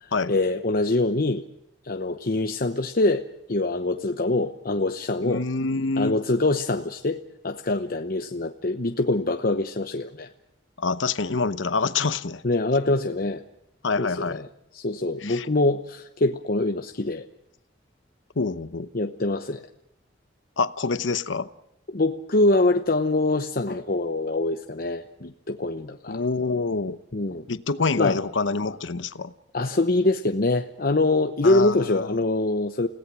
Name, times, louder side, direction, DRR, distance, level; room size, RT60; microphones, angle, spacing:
voice 1, 0.0-1.5 1.8-5.4 6.0-10.3 12.4-13.4 14.0-14.5 14.7-17.3 18.9-19.6 21.9-26.2 27.1-27.5 28.0-28.2 29.5-32.9, left 2 dB, 50° left, 6 dB, 0.9 m, -24 dB
voice 2, 5.2-6.1 10.8-12.4 13.8-14.4 15.2-15.5 18.4-18.9 20.6-21.5 26.1-27.0 27.5-29.3 31.4-32.1, left 4 dB, 85° left, 14 dB, 0.9 m, -26 dB
30.0 x 17.5 x 6.2 m, 0.82 s
head